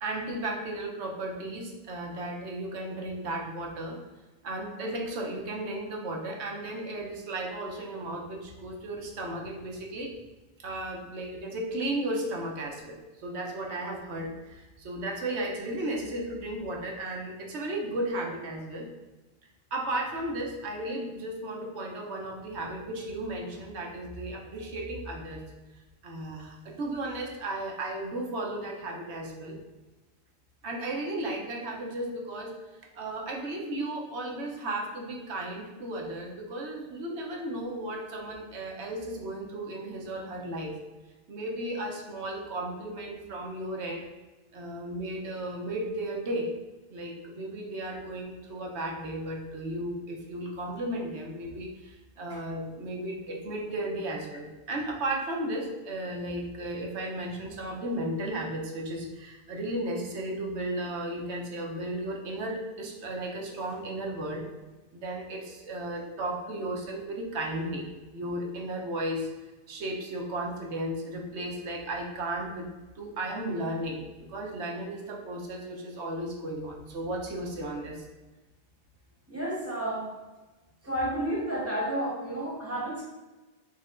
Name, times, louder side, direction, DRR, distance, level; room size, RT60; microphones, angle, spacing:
voice 1, 0.0-4.0 4.4-10.1 10.6-18.9 19.7-25.4 26.0-29.6 30.6-40.8 41.3-44.0 44.5-46.5 46.9-64.5 64.9-67.8 68.1-69.3 69.7-72.7 73.0-78.0, right 1 dB, 75° right, 0 dB, 1.1 m, -34 dB
voice 2, 79.3-80.0 80.9-83.0, right 1 dB, 15° right, -5 dB, 1.0 m, -31 dB
5.9 x 3.2 x 2.5 m, 1.2 s
omnidirectional pair, 1.2 m